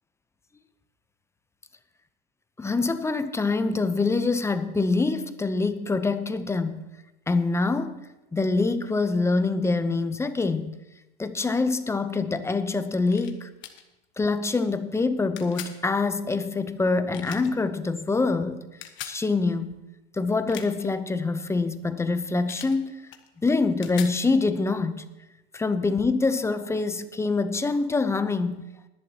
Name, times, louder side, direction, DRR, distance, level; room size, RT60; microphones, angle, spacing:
voice 1, 2.6-6.9 7.3-8.0 8.3-10.7 11.2-13.5 14.2-18.7 19.0-19.8 20.1-23.0 23.4-25.0 25.5-28.6, left 3 dB, 10° left, 0.6 m, -25 dB
sound 1, 13.1-13.3 13.6-13.8 15.4-15.8 17.1-17.5 18.8-19.2 20.3-20.9 22.5-22.8 23.1-24.2, left 11 dB, 40° left, 1.3 m, -40 dB
19.5 x 11.0 x 2.9 m
hypercardioid pair, 115°, 30 cm